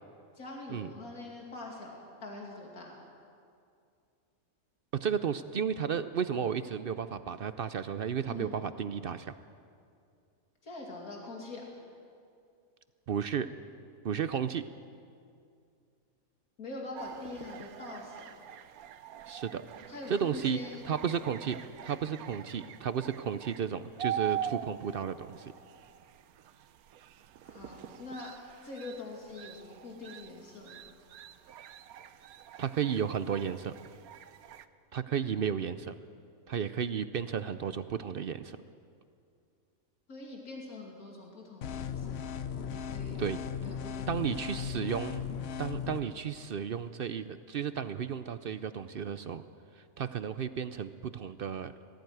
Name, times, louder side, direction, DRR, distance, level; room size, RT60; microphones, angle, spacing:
voice 1, 0.3-3.0 8.3-8.6 10.6-11.6 16.6-18.4 19.9-20.9 27.4-28.3 28.6-30.8 40.1-42.2 42.7-43.2 43.6-44.2, left 2 dB, 80° left, -1 dB, 3.0 m, -44 dB
voice 2, 5.0-9.3 13.1-13.5 14.0-14.6 19.3-19.6 20.1-20.6 20.8-25.5 32.6-33.7 34.9-35.9 36.5-38.6 43.2-43.4 44.1-45.2 45.6-49.4 50.0-51.7, right 7 dB, 60° right, 12 dB, 0.6 m, -33 dB
sound 1, 17.0-34.7, right 10 dB, 85° right, 1.2 m, -43 dB
sound 2, 41.6-46.0, left 7 dB, 55° left, 0.9 m, -37 dB
19.5 x 14.5 x 9.2 m, 2.4 s
omnidirectional pair, 1.5 m